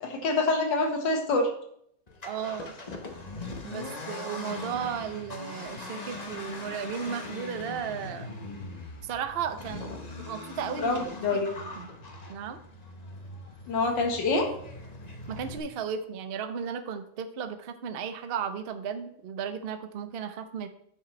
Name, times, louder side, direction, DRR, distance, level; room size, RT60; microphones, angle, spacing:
voice 1, 0.0-1.5 10.8-11.0 11.2-11.5 13.7-14.5, left 3 dB, 75° left, 3 dB, 2.0 m, -26 dB
Accelerating revving vroom, 2.1-15.6, left 2 dB, 35° left, 0.6 m, -41 dB
voice 2, 2.2-2.7 3.6-8.3 9.0-9.9 10.3-11.1 11.3-11.9 12.3-12.6 15.3-20.7, right 7 dB, 65° right, 8 dB, 0.5 m, -35 dB
11.0 x 6.9 x 3.2 m, 0.71 s
omnidirectional pair, 2.0 m